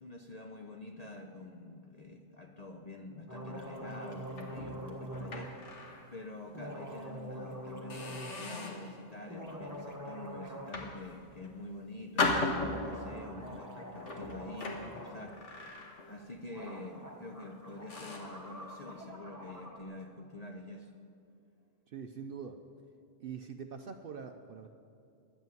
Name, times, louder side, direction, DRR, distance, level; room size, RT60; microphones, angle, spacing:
voice 1, 0.0-5.6 6.1-20.9, left 2 dB, 45° left, 3 dB, 0.5 m, -47 dB
sound 1, 3.3-5.5 6.5-8.4 9.2-10.8 11.1-11.2 12.6-15.3 16.2-16.3 16.5-19.8, equal, 15° right, 1.5 m, -45 dB
sound 2, 4.3-6.1 6.5-6.7 7.3-7.4 7.9-8.9 9.5-9.8 10.5-11.6 12.2-13.2 14.0-16.3 16.6-16.9 17.4-17.5 17.9-18.4, left 3 dB, 60° left, 1.6 m, -37 dB
voice 2, 21.9-22.6 23.2-24.7, right 6 dB, 60° right, 6 dB, 0.6 m, -43 dB
11.0 x 8.2 x 9.1 m, 2.6 s
omnidirectional pair, 1.4 m